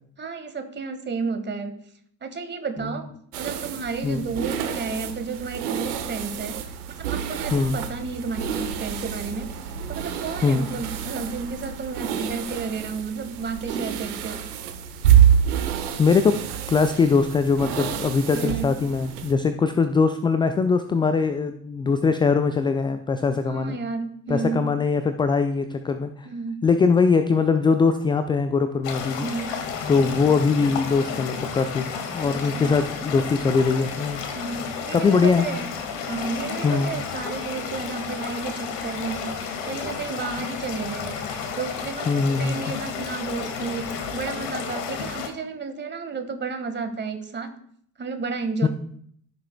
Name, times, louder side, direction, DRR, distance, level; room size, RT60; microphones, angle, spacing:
voice 1, 0.2-1.8 2.2-3.1 3.4-9.5 9.9-14.5 18.3-18.7 23.4-24.7 26.2-26.6 29.2-29.6 30.0-30.2 32.2-32.8 34.3-35.7 36.1-47.5 48.0-48.7, right 4 dB, 25° right, 7 dB, 1.5 m, -32 dB
sound 1, 3.3-19.3, right 9 dB, 70° right, 1.1 m, -27 dB
voice 2, 16.0-16.4 16.7-23.8 24.3-26.3 26.6-29.3 29.9-31.9 32.1-34.2 34.9-35.5 36.6-36.9 42.1-42.8 48.6-48.7, left 5 dB, 10° left, 9 dB, 0.3 m, -21 dB
sound 2, 28.8-45.3, left 6 dB, 60° left, 1.7 m, -32 dB
15.5 x 6.8 x 2.3 m, 0.65 s
figure-of-eight pair, 60°, 47 cm